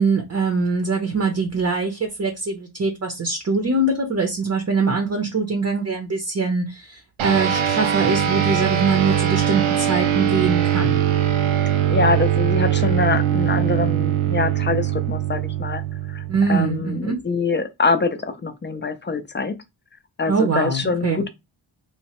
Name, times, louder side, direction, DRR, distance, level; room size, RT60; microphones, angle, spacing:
voice 1, 0.0-11.0 16.3-17.2 20.3-21.2, right 4 dB, 35° right, 0.6 m, -23 dB
sound 1, 7.2-16.9, right 10 dB, 80° right, 0.6 m, -21 dB
voice 2, 11.9-15.8 16.1-16.2 16.5-19.5 20.2-21.3, left 4 dB, 25° left, 0.3 m, -24 dB
3.1 x 2.1 x 2.8 m
wide cardioid pair, 95°, 47 cm